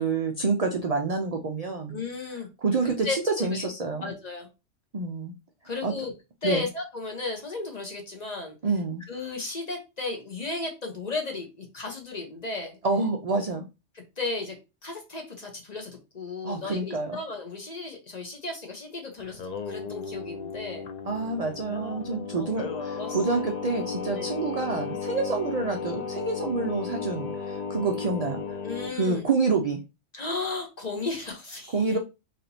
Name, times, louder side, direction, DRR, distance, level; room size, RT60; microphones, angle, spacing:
voice 1, 0.0-2.0 2.6-4.1 4.9-5.3 5.8-5.9 6.4-6.7 8.6-9.0 12.8-13.6 16.4-17.2 21.1-28.6 28.9-29.8 31.7-32.0, right 4 dB, 65° right, 4 dB, 0.3 m, -27 dB
voice 2, 1.9-2.5 2.8-3.7 4.0-4.5 5.6-6.1 6.4-8.6 9.1-12.8 14.2-14.6 14.8-20.9 22.3-23.4 24.2-24.3 28.6-29.3 30.1-32.0, left 3 dB, 40° left, 3 dB, 0.7 m, -34 dB
Singing, 19.2-28.9, left 5 dB, 80° left, 0.3 m, -35 dB
4.2 x 2.8 x 2.6 m, 0.27 s
omnidirectional pair, 1.3 m